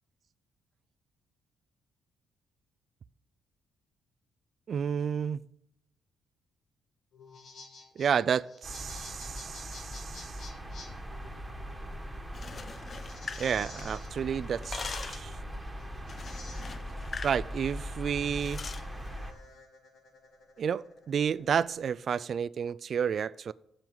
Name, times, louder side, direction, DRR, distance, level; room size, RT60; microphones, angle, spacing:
voice 1, 4.7-5.4 8.0-10.4 13.4-15.3 17.2-18.6 20.6-23.5, right 7 dB, 55° right, 0.3 m, -31 dB
sound 1, 7.1-21.9, left 3 dB, 65° left, 2.6 m, -52 dB
sound 2, 8.6-19.3, equal, 10° right, 1.5 m, -40 dB
sound 3, 12.2-14.1 14.4-15.3 16.1-17.4 17.7-17.9 18.3-18.9, left 5 dB, 40° left, 0.5 m, -42 dB
7.6 x 7.3 x 7.9 m
cardioid pair, 90°, 0 cm